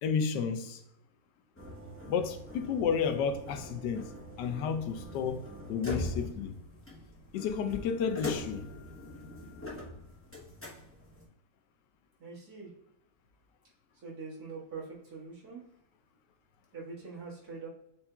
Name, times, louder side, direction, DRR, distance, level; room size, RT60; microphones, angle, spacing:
voice 1, 0.0-0.8 2.1-4.1 4.4-6.5 7.3-8.7, left 6 dB, 85° left, 1.2 m, -32 dB
sound 1, 1.6-11.2, left 2 dB, 15° left, 0.4 m, -42 dB
voice 2, 12.2-12.7 14.0-15.7 16.7-17.7, right 4 dB, 60° right, 1.9 m, -43 dB
7.0 x 2.7 x 2.3 m
omnidirectional pair, 1.8 m